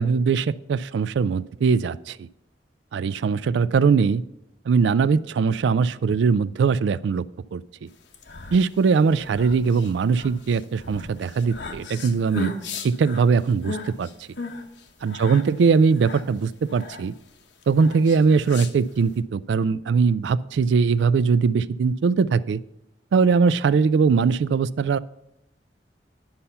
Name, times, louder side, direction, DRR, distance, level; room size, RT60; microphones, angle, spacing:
voice 1, 0.0-2.3 2.9-4.2 4.7-7.2 7.5-7.9 8.5-12.5 12.8-14.1 15.0-17.1 17.7-22.6 23.1-25.0, right 5 dB, 80° right, 18 dB, 0.3 m, -21 dB
sound 1, 8.0-19.2, left 2 dB, 80° left, 1.0 m, -37 dB
10.5 x 5.6 x 5.5 m, 0.82 s
head